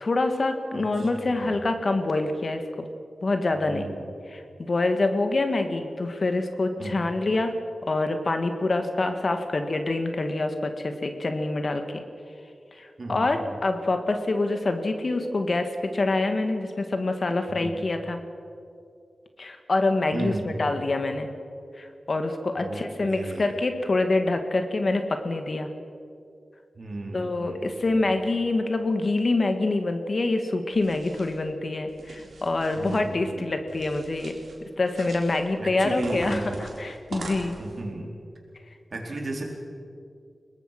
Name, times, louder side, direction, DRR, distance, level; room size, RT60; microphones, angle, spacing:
voice 1, 0.0-2.9 3.2-3.9 4.3-7.5 7.8-12.0 12.8-18.2 19.4-21.3 21.8-25.7 27.1-34.4 34.8-37.6, left 2 dB, 55° left, 7 dB, 2.0 m, -26 dB
voice 2, 0.7-1.6 3.7-4.1 6.8-7.1 13.0-13.5 17.5-17.8 20.1-20.8 22.6-23.5 26.8-28.1 32.8-33.5 35.6-36.5 37.6-38.1 38.9-39.4, right 2 dB, 60° right, 0 dB, 4.4 m, -35 dB
sound 1, 30.7-31.4 31.9-33.0 33.7-34.6 34.8-35.4 36.0-37.8, right 2 dB, 85° right, 3.8 m, -41 dB
22.5 x 19.5 x 6.1 m, 2.4 s
cardioid pair, 45°, 0 cm